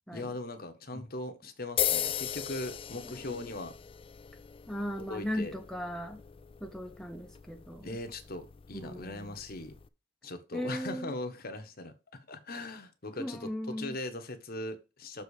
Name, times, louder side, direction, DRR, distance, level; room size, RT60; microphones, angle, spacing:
voice 1, 0.1-3.7 5.0-5.6 7.8-9.7 10.2-15.2, left 2 dB, 50° left, 1.2 m, -40 dB
sound 1, 1.8-9.9, left 9 dB, 30° left, 0.4 m, -38 dB
voice 2, 3.0-3.5 4.7-6.2 6.6-8.0 8.7-9.3 10.5-11.2 13.2-13.9, equal, 5° left, 0.8 m, -38 dB
7.0 x 3.9 x 6.5 m
head